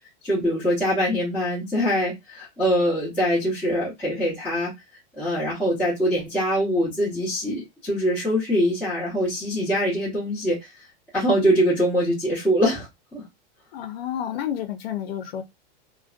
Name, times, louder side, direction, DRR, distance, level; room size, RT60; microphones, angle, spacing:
voice 1, 0.2-4.7 5.2-10.7 11.1-12.9 13.1-13.2, equal, 5° left, 1.0 m, -23 dB
voice 2, 13.7-15.4, left 10 dB, 90° left, 0.6 m, -30 dB
2.5 x 2.2 x 2.4 m
supercardioid pair, 170°, 30 cm